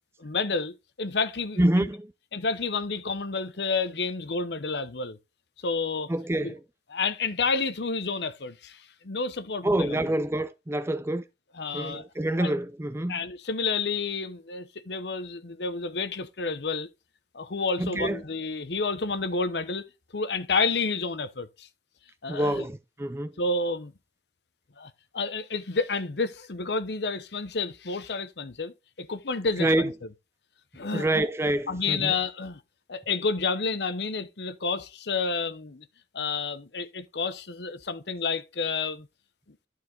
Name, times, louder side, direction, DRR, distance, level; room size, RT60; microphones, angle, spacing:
voice 1, 0.2-1.9 2.3-5.2 5.6-6.1 6.4-6.5 6.9-10.1 11.5-12.0 12.4-12.5 13.1-16.9 17.3-19.8 20.1-21.7 22.2-22.7 23.4-23.9 24.8-29.9 30.7-31.3 31.7-32.6 32.9-35.9 36.1-39.1, left 4 dB, 65° left, 0.9 m, -30 dB
voice 2, 1.6-2.1 6.1-6.6 9.6-11.2 11.7-13.2 17.8-18.2 22.3-23.3 29.6-29.9 30.9-32.1, right 1 dB, 15° right, 0.5 m, -26 dB
11.0 x 4.7 x 3.8 m
head